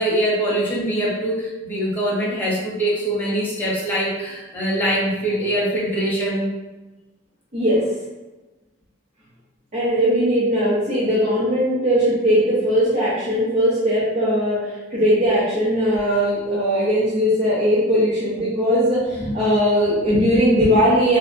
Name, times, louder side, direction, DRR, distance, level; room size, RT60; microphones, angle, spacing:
voice 1, 0.0-6.5, right 1 dB, 10° left, -7 dB, 0.7 m, -23 dB
voice 2, 7.5-7.8 9.7-21.2, equal, 40° right, -10 dB, 0.7 m, -19 dB
2.7 x 2.2 x 2.4 m, 1.1 s
head